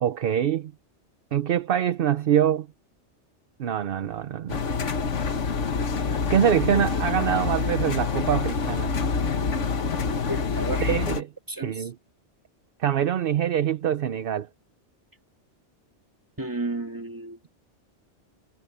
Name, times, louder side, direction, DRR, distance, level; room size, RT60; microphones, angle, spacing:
voice 1, 0.0-0.7 1.3-2.7 3.6-4.6 6.3-8.9 10.8-11.3 11.6-11.9 12.8-14.5, right 9 dB, 55° right, 0.8 m, -24 dB
Engine, 4.5-11.2, left 5 dB, 85° left, 1.7 m, -26 dB
voice 2, 10.3-11.0 11.5-11.9 16.4-17.6, right 2 dB, 15° right, 2.1 m, -33 dB
omnidirectional pair, 1.2 m